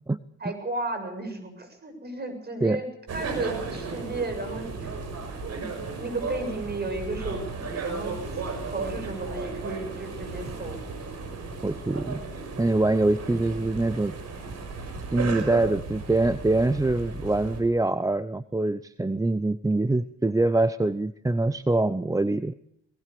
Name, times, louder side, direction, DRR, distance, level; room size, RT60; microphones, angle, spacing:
voice 1, 0.4-2.9 3.1-4.9 5.5-8.2 8.6-10.8, right 2 dB, 35° right, 6 dB, 7.0 m, -34 dB
sound 1, 3.1-17.6, right 4 dB, 55° right, 6.2 m, -35 dB
voice 2, 11.6-12.2 12.6-14.1 15.1-22.5, right 2 dB, 10° right, 14 dB, 0.7 m, -24 dB
19.5 x 19.5 x 6.9 m, 0.72 s
cardioid pair, 90°, 30 cm